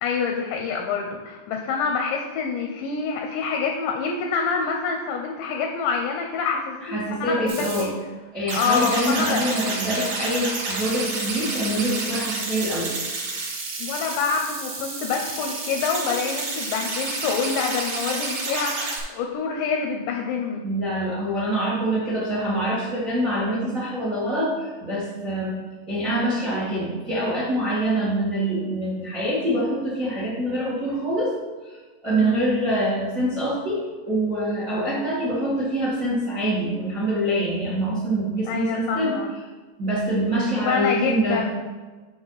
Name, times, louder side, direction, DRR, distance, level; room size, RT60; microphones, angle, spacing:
voice 1, 0.0-7.9 8.5-9.5 13.8-20.6 32.2-32.4 38.5-39.3 40.3-41.6, left 5 dB, 80° left, 2 dB, 2.6 m, -26 dB
voice 2, 6.8-7.9 8.3-13.0 20.6-31.3 31.7-39.1 39.8-41.4, right 1 dB, 80° right, -8 dB, 0.7 m, -25 dB
sound 1, 7.5-7.8 8.5-19.0, right 3 dB, 55° right, 2.9 m, -30 dB
7.9 x 5.8 x 4.0 m, 1.3 s
omnidirectional pair, 5.7 m